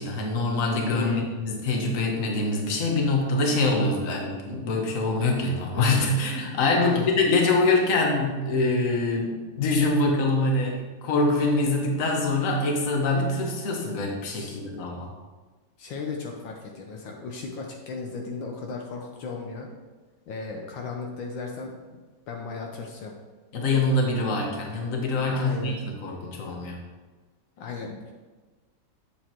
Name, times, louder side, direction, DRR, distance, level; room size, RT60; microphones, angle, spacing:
voice 1, 0.0-15.1 23.5-26.8, left 2 dB, 45° left, 0 dB, 1.5 m, -24 dB
voice 2, 0.9-1.3 6.8-7.1 14.3-14.6 15.8-19.7 20.3-21.8 22.3-23.1 25.3-25.8 27.6-28.1, left 4 dB, 75° left, 1 dB, 1.5 m, -35 dB
8.6 x 7.4 x 3.0 m, 1.3 s
omnidirectional pair, 2.2 m